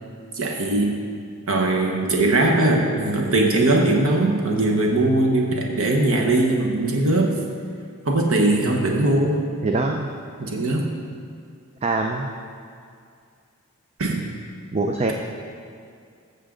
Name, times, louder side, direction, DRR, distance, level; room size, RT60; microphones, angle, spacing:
voice 1, 0.3-1.0 1.5-7.4 8.0-9.4 10.4-10.9 14.0-14.3, right 2 dB, 65° right, 0 dB, 1.1 m, -20 dB
voice 2, 9.6-10.1 11.8-12.3 14.7-15.1, right 3 dB, 30° right, 3 dB, 0.5 m, -23 dB
14.5 x 7.4 x 3.8 m, 2.3 s
head